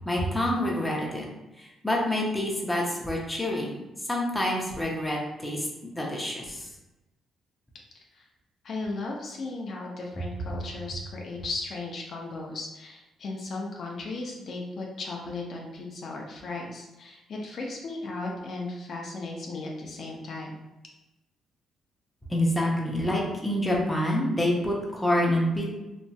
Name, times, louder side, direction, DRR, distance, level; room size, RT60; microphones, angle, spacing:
voice 1, 0.1-1.3 1.6-3.7 4.1-5.7 5.9-6.7 22.3-25.7, left 1 dB, 10° left, -2 dB, 0.6 m, -27 dB
voice 2, 8.6-20.6, left 3 dB, 55° left, -1 dB, 0.5 m, -36 dB
3.0 x 2.7 x 2.2 m, 0.99 s
cardioid pair, 90°, 0 cm